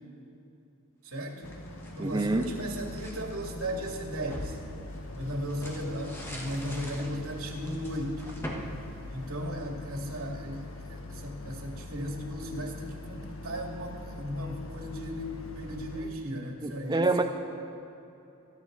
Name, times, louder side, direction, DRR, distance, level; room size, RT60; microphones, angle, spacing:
voice 1, 1.0-1.4 1.9-4.6 5.1-8.2 9.1-17.2, equal, 90° right, 0 dB, 2.5 m, -36 dB
Throwing Trash Away in the Rain, 1.2-3.2 3.7-9.8, equal, 10° left, 1.5 m, -43 dB
Boat Water vehicle, 1.4-16.1, left 2 dB, 70° left, 1.4 m, -43 dB
voice 2, 2.0-2.5 16.6-17.2, right 2 dB, 20° right, 6 dB, 0.5 m, -26 dB
27.0 x 10.5 x 4.0 m, 2.9 s
head